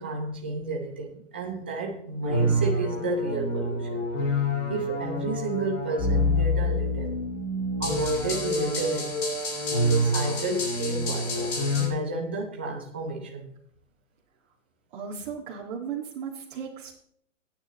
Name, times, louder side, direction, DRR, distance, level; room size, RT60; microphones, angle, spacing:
voice 1, 0.0-4.0 4.7-7.2 7.8-9.2 9.8-13.5, right 3 dB, 10° right, -1 dB, 0.4 m, -32 dB
sound 1, 2.2-11.9, left 1 dB, 55° left, 4.7 m, -27 dB
voice 2, 14.9-16.9, right 7 dB, 40° right, -4 dB, 1.9 m, -36 dB
19.0 x 9.1 x 3.0 m, 0.65 s
hypercardioid pair, 165°, 38 cm